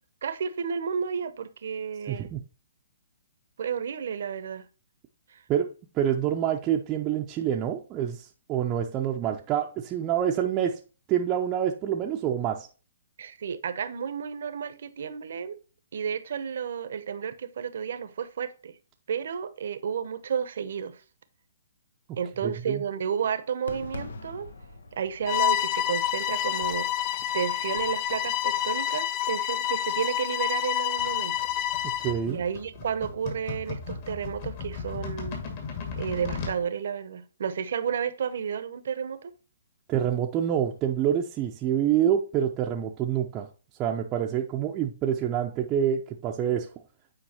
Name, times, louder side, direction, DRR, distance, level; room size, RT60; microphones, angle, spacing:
voice 1, 0.2-2.3 3.6-4.7 5.3-5.4 13.2-15.6 15.9-18.7 19.1-21.0 22.2-24.5 24.9-31.4 32.3-35.4 36.0-39.3, right 7 dB, 65° right, 0.9 m, -32 dB
voice 2, 2.1-2.4 5.5-10.8 11.1-12.7 22.4-22.8 32.0-32.4 39.9-43.5 43.8-46.7, right 9 dB, 25° right, 0.6 m, -27 dB
Fireworks, 23.7-28.7, left 3 dB, 80° left, 0.9 m, -45 dB
Bowed string instrument, 25.3-32.2, left 12 dB, 30° left, 0.4 m, -28 dB
sound 1, 31.0-36.6, left 5 dB, 45° left, 2.4 m, -37 dB
8.8 x 4.6 x 3.0 m
hypercardioid pair, 135°, 0 cm